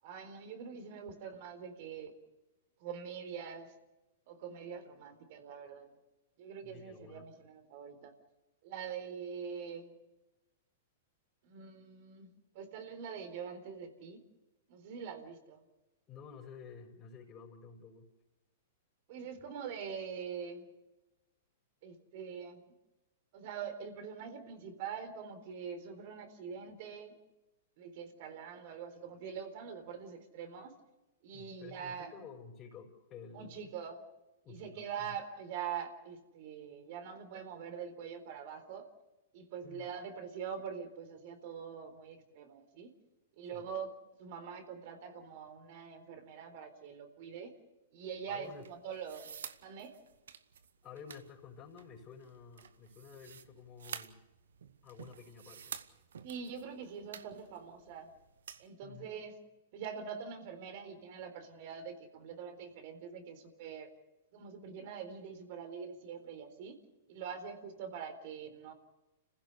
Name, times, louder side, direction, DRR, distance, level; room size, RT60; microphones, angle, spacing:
voice 1, 0.0-2.2 2.8-3.7 4.3-5.9 6.4-8.1 8.6-9.9 11.4-14.2 14.7-15.6 19.1-20.7 21.8-22.6 23.3-27.2 27.8-30.8 31.2-32.1 33.3-34.0 34.5-38.9 39.3-42.9 43.4-43.9 44.2-47.5 47.9-49.3 49.6-49.9 56.2-58.1 58.6-59.4 59.7-63.9 64.3-66.8 67.1-68.7, right 7 dB, 55° right, 8 dB, 4.0 m, -44 dB
voice 2, 6.6-7.3 16.1-18.1 31.3-33.7 34.4-35.2 39.6-39.9 43.5-43.7 48.3-48.7 50.8-54.2 54.8-55.8 58.8-59.1, left 6 dB, 30° left, -3 dB, 5.1 m, -52 dB
sound 1, 48.4-58.7, right 7 dB, 80° right, 1.2 m, -50 dB
30.0 x 16.0 x 6.9 m, 1.0 s
hypercardioid pair, 120°, 0 cm